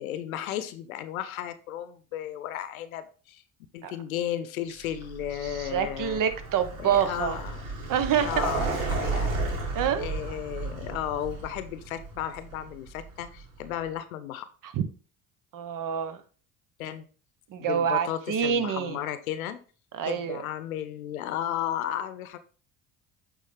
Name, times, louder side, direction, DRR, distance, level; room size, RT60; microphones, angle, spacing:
voice 1, 0.0-3.4 3.7-6.2 6.8-7.6 8.2-9.3 9.6-14.4 16.8-17.1 17.6-19.6 20.0-22.4, left 11 dB, 85° left, 12 dB, 0.7 m, -34 dB
Vehicle, 4.9-13.7, right 3 dB, 80° right, 2.2 m, -33 dB
voice 2, 5.4-7.4 7.9-8.3 9.7-10.2 14.7-14.8 15.5-16.2 17.5-19.0 19.9-20.4, right 8 dB, 50° right, 10 dB, 1.1 m, -27 dB
8.3 x 3.7 x 3.4 m, 0.38 s
hypercardioid pair, 65°, 41 cm